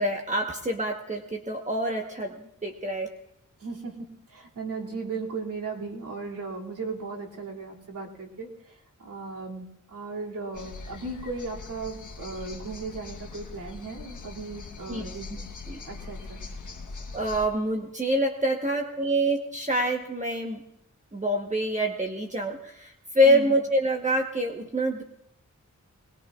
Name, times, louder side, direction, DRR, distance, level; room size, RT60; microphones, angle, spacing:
voice 1, 0.0-2.3 2.6-3.1 14.9-15.1 15.7-15.8 17.1-20.6 21.1-25.0, equal, 25° right, 1 dB, 1.2 m, -26 dB
voice 2, 3.6-15.5 15.8-16.4 23.2-23.5, right 3 dB, 85° right, -3 dB, 2.7 m, -37 dB
sound 1, 10.5-17.5, left 3 dB, 70° left, 1.4 m, -41 dB
21.5 x 20.0 x 2.5 m, 0.79 s
wide cardioid pair, 90°, 32 cm